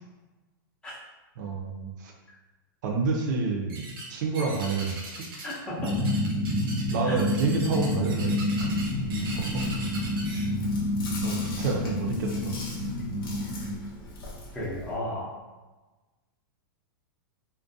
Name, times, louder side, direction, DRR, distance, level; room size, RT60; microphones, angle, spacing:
voice 1, 1.4-2.1 2.8-5.2 6.9-8.7 9.4-9.7 11.2-12.8, right 4 dB, 55° right, 1 dB, 0.5 m, -29 dB
sound 1, 3.7-4.1 4.3-5.6 5.8-10.4, right 2 dB, 90° right, 0.8 m, -40 dB
voice 2, 5.4-5.8 7.0-7.2 14.5-15.4, left 1 dB, 5° left, -7 dB, 0.5 m, -34 dB
sound 2, 5.8-13.7, left 1 dB, 40° left, 0.7 m, -29 dB
Chewing mastication, 8.6-14.9, left 1 dB, 90° left, 0.6 m, -41 dB
2.4 x 2.1 x 2.6 m, 1.2 s
supercardioid pair, 160°, 12 cm